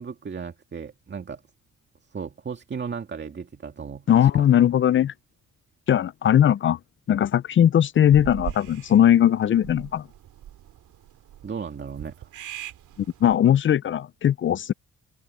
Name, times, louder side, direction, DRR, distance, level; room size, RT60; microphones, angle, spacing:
voice 1, 0.0-1.4 2.1-4.3 11.4-12.3, right 6 dB, 35° right, 2.1 m, -35 dB
voice 2, 4.1-5.1 5.9-6.8 7.1-10.1 13.2-14.7, left 10 dB, 40° left, 0.5 m, -19 dB
sound 1, 8.1-13.3, right 12 dB, 75° right, 2.8 m, -40 dB
cardioid pair, 90°, 30 cm